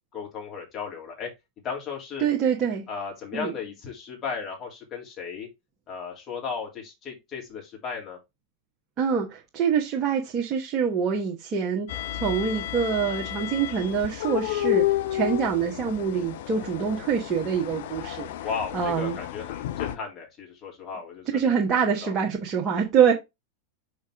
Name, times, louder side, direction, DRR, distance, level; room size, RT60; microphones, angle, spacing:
voice 1, 0.1-1.3 1.6-2.2 2.9-5.5 5.9-8.2 18.4-22.2, left 5 dB, 30° left, 3.2 m, -35 dB
voice 2, 2.2-2.8 3.3-3.5 9.0-18.3 18.7-19.2 21.3-23.1, right 7 dB, 30° right, 1.3 m, -25 dB
sound 1, 11.9-20.0, left 14 dB, 55° left, 0.6 m, -31 dB
6.1 x 5.1 x 3.6 m
figure-of-eight pair, 90°, 0 cm